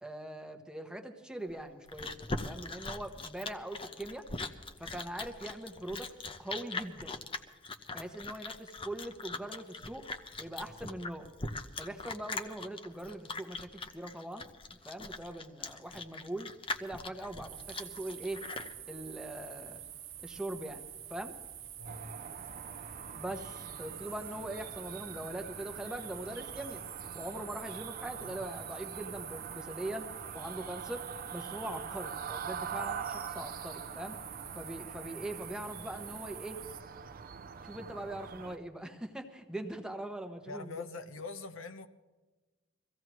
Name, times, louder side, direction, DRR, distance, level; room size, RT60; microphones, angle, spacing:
voice 1, 0.0-2.2 2.4-4.3 4.8-6.1 6.4-7.2 7.9-10.0 10.4-11.3 11.8-14.4 14.7-16.5 16.8-18.4 18.8-19.9 20.2-20.8 21.1-21.4 23.1-26.8 27.1-34.2 34.5-36.6 37.6-40.9, right 1 dB, 5° right, 4 dB, 1.2 m, -41 dB
Chewing mastication, 1.5-18.7, left 3 dB, 25° left, 0.9 m, -41 dB
sound 1, 17.5-36.8, right 10 dB, 70° right, 1.2 m, -47 dB
voice 2, 21.8-22.1 28.2-28.4 40.5-41.9, left 4 dB, 75° left, 7 dB, 1.0 m, -43 dB
sound 2, 21.8-38.6, right 6 dB, 45° right, 0.6 m, -44 dB
23.5 x 16.0 x 3.1 m, 1.2 s
head